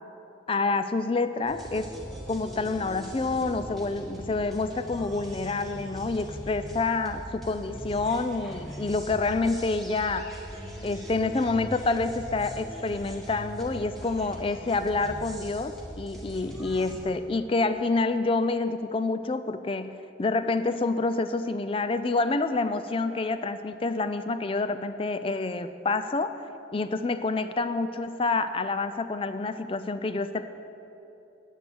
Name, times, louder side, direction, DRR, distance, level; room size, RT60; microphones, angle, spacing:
voice 1, 0.5-1.9 2.3-10.3 10.8-26.4 26.7-30.5, left 3 dB, 30° left, 11 dB, 0.4 m, -28 dB
sound 1, 1.5-17.0, equal, ahead, 1.6 m, -41 dB
9.0 x 8.1 x 6.8 m, 3.0 s
head